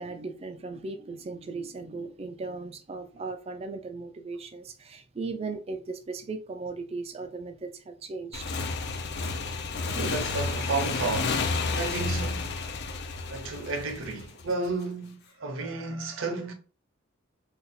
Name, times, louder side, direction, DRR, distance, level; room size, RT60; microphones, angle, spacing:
voice 1, 0.0-8.5, right 3 dB, 30° right, 0.3 m, -37 dB
Motorcycle / Engine, 8.3-14.7, left 4 dB, 50° left, 0.4 m, -31 dB
voice 2, 9.9-11.5 11.7-12.6 13.2-16.5, right 3 dB, 65° right, 0.7 m, -32 dB
2.5 x 2.3 x 4.0 m
head